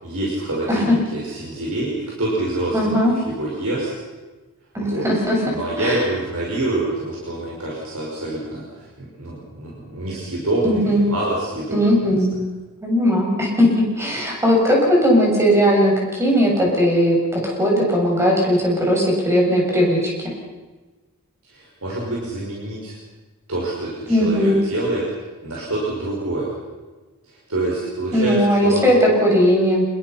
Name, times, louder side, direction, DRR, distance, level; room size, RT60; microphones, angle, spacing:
voice 1, 0.0-3.9 4.8-5.1 5.4-8.6 9.0-11.8 12.1-12.2 21.5-22.9 23.5-25.0 25.4-26.6 27.5-28.9, right 2 dB, 75° right, -4 dB, 5.8 m, -26 dB
voice 2, 2.7-3.1 4.7-5.4 5.8-6.0 10.6-11.0 11.7-12.4 12.8-20.3 24.1-24.6 28.1-29.8, equal, 10° right, -2 dB, 7.6 m, -18 dB
27.0 x 21.5 x 5.9 m, 1.2 s
head